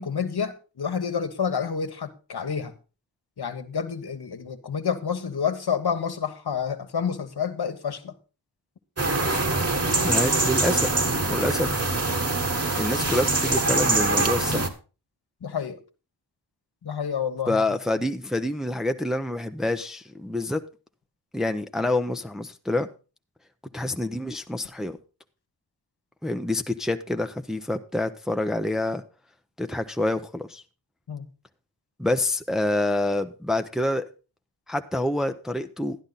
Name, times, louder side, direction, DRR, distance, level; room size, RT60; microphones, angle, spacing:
voice 1, 0.0-2.7 3.4-8.1 15.4-15.8 16.8-17.6 31.1-31.3, left 6 dB, 60° left, 1.4 m, -29 dB
sound 1, 9.0-14.7, right 3 dB, 35° right, 1.5 m, -24 dB
voice 2, 10.0-11.0 11.2-11.8 12.7-14.7 17.5-20.6 21.3-22.9 23.7-25.0 26.2-29.0 29.6-30.6 32.0-34.0 34.7-36.0, left 1 dB, ahead, 0.7 m, -27 dB
11.5 x 10.5 x 4.0 m
wide cardioid pair, 70°, 44 cm